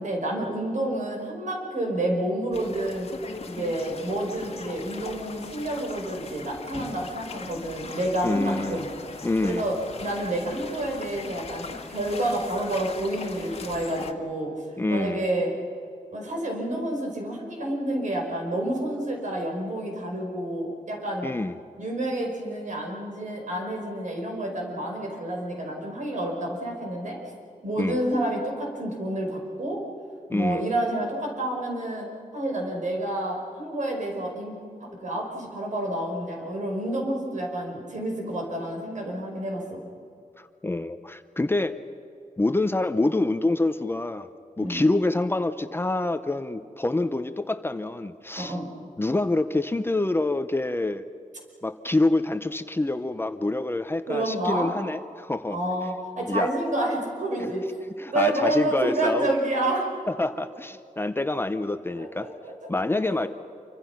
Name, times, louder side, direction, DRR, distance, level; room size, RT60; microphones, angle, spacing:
voice 1, 0.0-3.1 3.4-8.9 9.4-14.5 14.9-15.5 16.1-21.3 21.8-27.2 27.6-29.8 30.3-39.8 44.6-44.9 48.4-48.7 54.1-54.7 55.5-57.7 58.1-59.9 62.0-63.3, right 1 dB, 65° right, 1 dB, 5.4 m, -29 dB
sound 1, 2.5-14.1, left 4 dB, 50° left, 1.6 m, -40 dB
voice 2, 8.2-8.8 9.2-9.7 14.8-15.2 21.2-21.5 27.8-28.0 30.3-30.6 40.4-41.7 42.4-44.3 44.6-48.6 49.0-51.0 51.6-55.6 56.3-56.5 57.4-57.5 58.0-59.3 60.1-62.3 62.7-63.3, left 2 dB, 15° left, 10 dB, 0.7 m, -26 dB
27.0 x 25.0 x 5.9 m, 2.6 s
wide cardioid pair, 160°, 14 cm